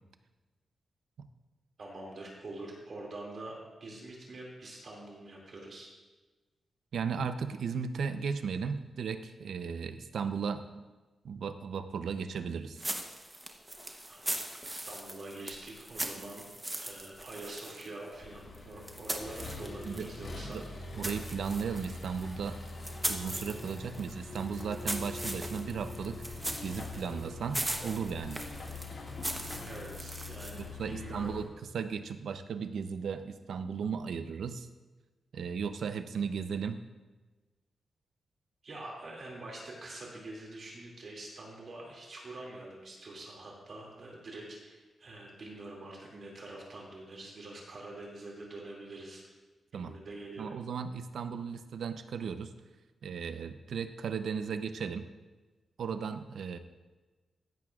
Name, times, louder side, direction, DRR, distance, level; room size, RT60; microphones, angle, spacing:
voice 1, 1.8-3.5 3.8-5.9 14.1-14.4 14.8-16.4 16.8-20.6 29.6-31.3 38.6-49.2 49.7-50.5, right 2 dB, 45° right, -3 dB, 2.4 m, -45 dB
voice 2, 6.9-10.8 11.2-12.8 19.9-20.1 20.5-20.6 20.9-22.6 23.1-26.3 26.6-28.5 30.5-31.5 31.7-34.7 35.3-36.8 49.7-49.9 50.4-52.5 53.0-55.1 55.8-56.6, right 6 dB, 75° right, 10 dB, 0.6 m, -36 dB
sound 1, 12.8-20.2 20.5-30.8, right 1 dB, 10° right, 0.9 m, -40 dB
Accelerating revving vroom, 18.2-31.4, left 3 dB, 55° left, 1.9 m, -43 dB
15.0 x 11.0 x 2.4 m, 1.2 s
wide cardioid pair, 155°, 0 cm